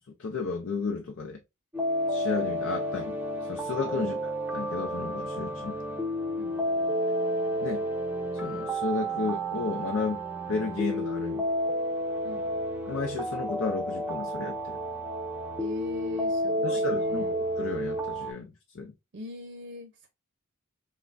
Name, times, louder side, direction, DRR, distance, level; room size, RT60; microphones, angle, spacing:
voice 1, 0.2-1.4 2.1-3.2 3.5-4.1 4.5-5.8 7.6-7.8 8.4-11.4 12.9-14.8 16.6-18.9, left 4 dB, 65° left, 0.5 m, -33 dB
sound 1, 1.7-18.3, equal, 10° right, 0.6 m, -31 dB
voice 2, 15.6-17.3 19.1-20.1, equal, 50° right, 0.6 m, -41 dB
5.5 x 2.1 x 2.4 m
head